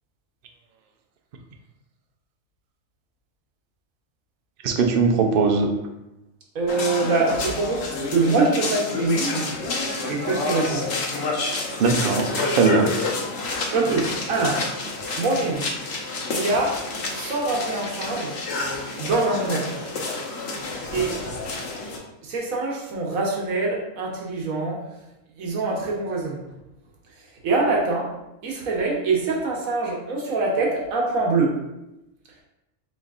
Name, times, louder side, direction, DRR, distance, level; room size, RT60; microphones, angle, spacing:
voice 1, 4.6-5.7 11.8-12.9, right 4 dB, 55° right, 4 dB, 0.7 m, -20 dB
voice 2, 6.5-9.5 10.1-10.9 13.7-14.6 15.2-15.7 16.3-16.8 17.1-18.3 19.0-19.8 20.9-21.2 22.2-24.8 25.4-26.4 27.2-28.1 28.4-31.6, right 3 dB, 90° right, -1 dB, 1.4 m, -24 dB
sound 1, 6.7-22.0, left 3 dB, 60° left, 1.0 m, -29 dB
5.0 x 4.0 x 2.4 m, 0.92 s
omnidirectional pair, 1.4 m